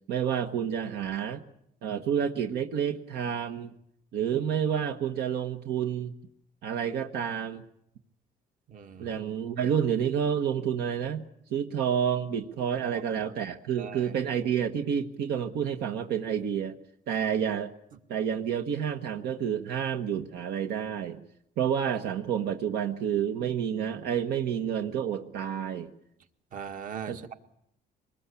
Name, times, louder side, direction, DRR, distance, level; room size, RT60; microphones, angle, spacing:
voice 1, 0.1-1.4 1.8-3.7 4.1-6.1 6.6-7.6 9.0-11.2 11.5-16.8 17.1-17.7 18.1-21.2 21.6-25.9 27.1-27.2, right 8 dB, 75° right, 5 dB, 1.5 m, -29 dB
voice 2, 8.7-9.1 12.9-13.0 13.8-14.1 26.5-27.3, right 8 dB, 55° right, 6 dB, 2.0 m, -39 dB
24.5 x 20.5 x 8.4 m, 0.74 s
cardioid pair, 110°, 17 cm